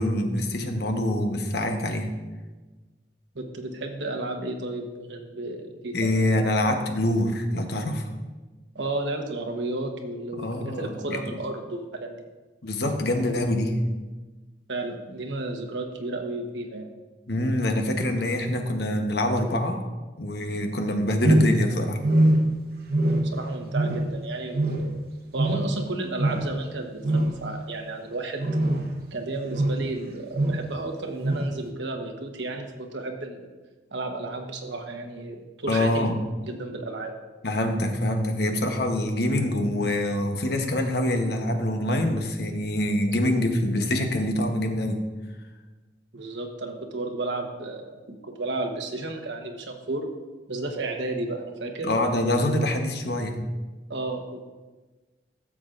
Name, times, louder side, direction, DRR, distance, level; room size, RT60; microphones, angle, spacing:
voice 1, 0.0-2.1 5.9-8.1 10.4-11.2 12.6-13.8 17.3-19.8 20.2-22.0 35.7-36.1 37.4-45.0 51.8-53.4, left 1 dB, 60° left, 5 dB, 1.0 m, -25 dB
voice 2, 3.3-6.1 8.7-12.3 14.7-16.9 23.0-24.9 25.3-28.4 29.1-33.5 33.9-36.1 36.4-37.1 46.1-50.1 50.5-51.9 53.9-54.4, right 2 dB, 85° right, 3 dB, 1.1 m, -33 dB
sound 1, 21.2-21.7 22.0-22.6 22.9-23.4 23.7-24.2 24.5-25.0 25.3-25.8 26.2-26.5 27.0-27.4 28.4-28.9 29.5-29.8 30.3-30.6 31.2-31.5, right 1 dB, 60° right, 0.9 m, -23 dB
13.5 x 7.2 x 2.6 m, 1.3 s
head